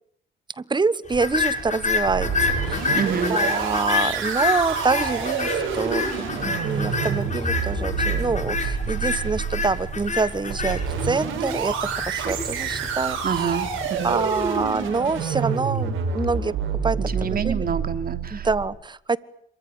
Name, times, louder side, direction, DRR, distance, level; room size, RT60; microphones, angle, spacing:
voice 1, 0.6-2.3 2.6-3.0 3.3-13.6 14.0-16.5 16.8-17.6 18.3-19.2, right 4 dB, 20° right, 19 dB, 1.2 m, -26 dB
sound 1, 1.1-15.5, left 4 dB, 35° left, 6.2 m, -29 dB
sound 2, 1.8-18.6, right 6 dB, 90° right, 7.8 m, -28 dB
voice 2, 2.9-3.3 13.2-14.2 17.0-18.5, right 6 dB, 50° right, 10 dB, 3.0 m, -27 dB
26.5 x 23.5 x 9.4 m, 0.68 s
cardioid pair, 90°, 20 cm